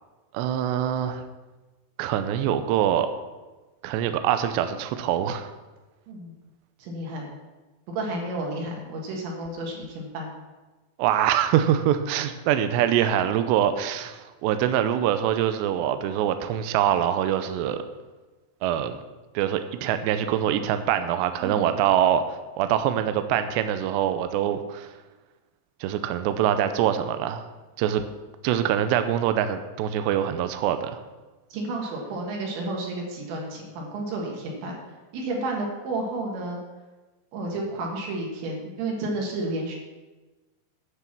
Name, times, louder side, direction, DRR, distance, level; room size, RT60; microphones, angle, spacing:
voice 1, 0.3-1.2 2.0-3.1 3.8-5.5 11.0-17.8 18.6-19.0 19.3-22.2 22.6-24.9 25.8-27.5 27.8-28.0 28.4-31.0, right 10 dB, 90° right, 9 dB, 2.5 m, -24 dB
voice 2, 6.8-7.3 7.9-10.3 21.4-21.7 31.5-34.8 35.1-36.6 37.3-39.8, right 2 dB, 70° right, -1 dB, 3.8 m, -31 dB
10.0 x 7.0 x 6.0 m, 1.2 s
omnidirectional pair, 5.7 m